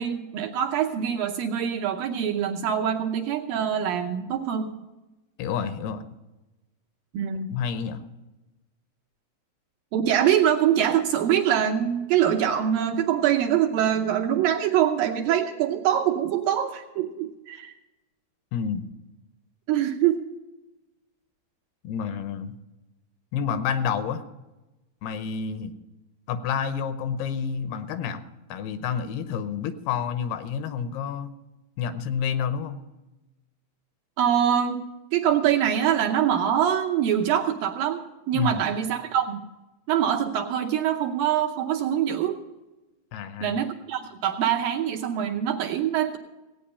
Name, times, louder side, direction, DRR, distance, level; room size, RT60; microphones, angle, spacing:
voice 1, 0.0-4.7 7.1-7.6 9.9-17.7 19.7-20.2 34.2-34.8 35.1-38.0 38.3-39.4 39.9-42.4 43.4-46.2, right 9 dB, 75° right, 2 dB, 2.2 m, -24 dB
voice 2, 5.4-6.1 7.5-8.0 18.5-18.8 21.8-22.5 23.3-24.2 25.0-25.7 26.3-28.2 28.5-31.3 31.8-32.8 38.3-38.6 43.1-43.6, left 7 dB, 80° left, 11 dB, 2.7 m, -29 dB
17.5 x 9.2 x 5.5 m, 1.1 s
omnidirectional pair, 4.7 m